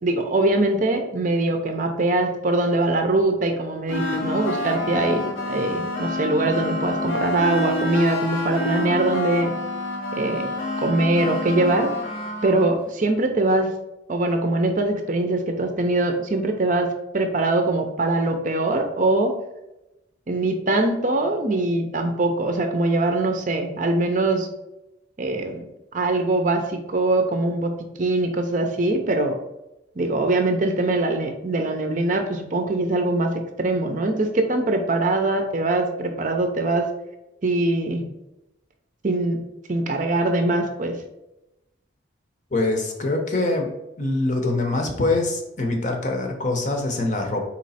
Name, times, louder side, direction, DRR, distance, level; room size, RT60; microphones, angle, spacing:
voice 1, 0.0-9.5 10.1-10.5 10.8-11.9 12.4-13.7 14.1-19.3 20.3-24.5 25.2-25.6 25.9-27.7 28.0-29.4 30.0-36.9 37.4-38.0 39.0-39.4 39.7-41.0, right 2 dB, 40° right, 5 dB, 0.5 m, -22 dB
sound 1, 3.9-12.7, left 2 dB, 80° left, 1.0 m, -28 dB
voice 2, 42.5-43.7 44.0-47.4, left 2 dB, 40° left, 3 dB, 0.7 m, -24 dB
4.2 x 3.1 x 4.1 m, 0.92 s
head